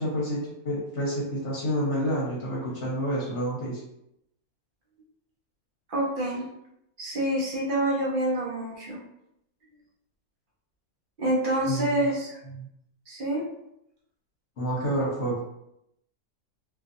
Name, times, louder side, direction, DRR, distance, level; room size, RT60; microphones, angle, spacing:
voice 1, 0.0-3.8 11.7-12.1 12.5-12.7 14.6-15.4, equal, 55° left, -5 dB, 1.1 m, -29 dB
voice 2, 5.9-6.4 7.0-9.0 11.2-12.4 13.1-13.5, right 1 dB, 50° right, -4 dB, 0.6 m, -27 dB
2.7 x 2.6 x 2.5 m, 0.80 s
omnidirectional pair, 1.6 m